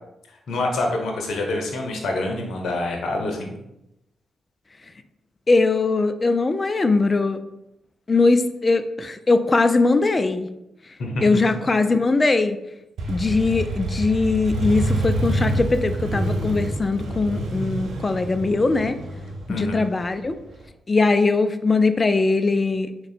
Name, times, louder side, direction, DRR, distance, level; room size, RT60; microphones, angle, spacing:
voice 1, 0.5-3.6 11.0-11.3 19.5-19.8, left 2 dB, 70° left, 1 dB, 0.7 m, -26 dB
voice 2, 5.5-7.4 8.1-10.5 11.2-12.6 13.1-19.0 19.5-20.4 20.9-22.9, left 3 dB, 35° left, 10 dB, 0.3 m, -20 dB
Motorcycle, 13.0-20.6, right 1 dB, 75° right, 0.6 m, -27 dB
3.6 x 2.2 x 4.1 m, 0.87 s
hypercardioid pair, 40°, 0 cm